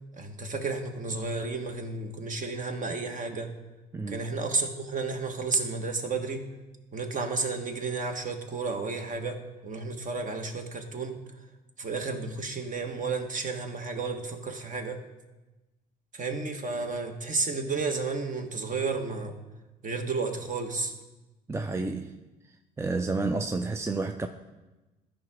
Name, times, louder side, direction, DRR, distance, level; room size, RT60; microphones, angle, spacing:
voice 1, 0.2-3.5 4.1-6.5 6.9-11.2 11.8-15.0 16.1-19.3 19.8-20.9, right 4 dB, 40° right, 1.4 m, -32 dB
voice 2, 3.9-4.2 21.5-22.2 22.4-24.3, right 3 dB, 15° right, 0.5 m, -31 dB
13.0 x 5.1 x 3.7 m
hypercardioid pair, 60°, 20 cm